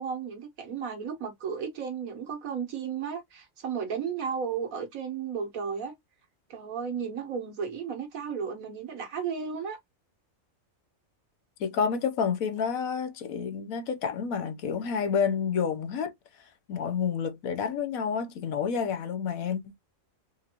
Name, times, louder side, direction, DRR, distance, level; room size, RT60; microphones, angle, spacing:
voice 1, 0.0-5.9 6.5-9.8, right 6 dB, 85° right, 1.6 m, -34 dB
voice 2, 11.6-16.1 16.7-19.8, left 6 dB, 90° left, 1.2 m, -29 dB
4.5 x 2.5 x 2.9 m
omnidirectional pair, 1.4 m